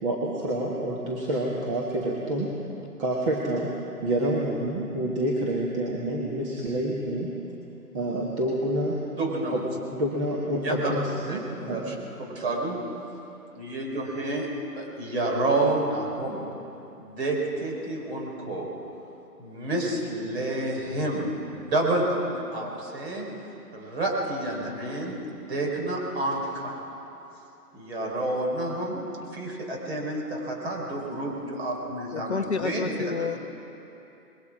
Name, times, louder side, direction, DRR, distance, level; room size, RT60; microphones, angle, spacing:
voice 1, 0.0-2.5 3.0-3.7 4.0-7.3 7.9-9.0 9.5-9.6 9.9-11.9, right 1 dB, 20° right, -3 dB, 1.5 m, -28 dB
voice 2, 9.2-9.7 10.6-11.0 11.3-11.4 11.7-12.8 13.5-14.5 14.8-16.4 17.0-18.7 19.4-23.3 23.7-26.8 27.7-29.0 29.3-33.1, right 2 dB, 40° right, -1 dB, 4.9 m, -29 dB
voice 3, 32.1-33.4, left 5 dB, 45° left, 7 dB, 0.8 m, -29 dB
26.0 x 21.5 x 4.9 m, 2.9 s
figure-of-eight pair, 155°, 48 cm